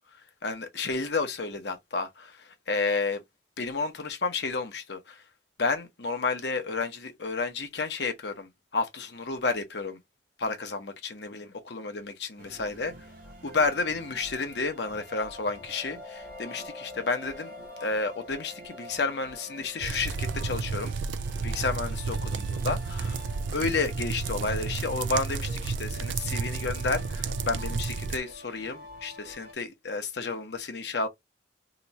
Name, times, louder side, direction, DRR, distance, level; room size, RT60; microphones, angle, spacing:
voice 1, 0.4-3.2 3.6-5.2 5.6-10.0 10.4-11.4 11.7-12.9 13.4-17.5 17.8-21.0 21.4-23.2 23.5-31.1, left 4 dB, 60° left, 0.8 m, -31 dB
sound 1, 12.4-29.5, left 1 dB, 50° right, 0.9 m, -47 dB
sound 2, 14.5-24.0, left 2 dB, 20° left, 0.9 m, -49 dB
sound 3, 19.8-28.2, right 4 dB, 70° right, 0.4 m, -32 dB
2.9 x 2.3 x 3.9 m
head